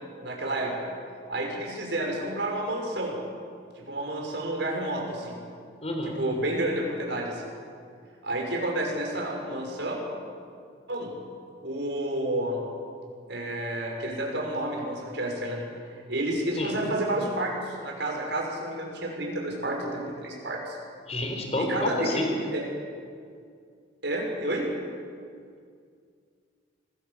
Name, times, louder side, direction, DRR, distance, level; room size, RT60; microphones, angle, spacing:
voice 1, 0.2-0.9 1.3-3.1 3.8-5.4 6.0-7.4 8.2-10.0 10.9-11.1 11.6-12.6 13.3-20.8 21.6-22.2 22.5-22.6 24.0-24.7, right 1 dB, 65° right, 0 dB, 6.4 m, -30 dB
voice 2, 5.8-6.2 16.6-16.8 21.1-22.3, left 1 dB, 35° left, 2 dB, 4.1 m, -29 dB
26.5 x 20.0 x 7.4 m, 2.2 s
head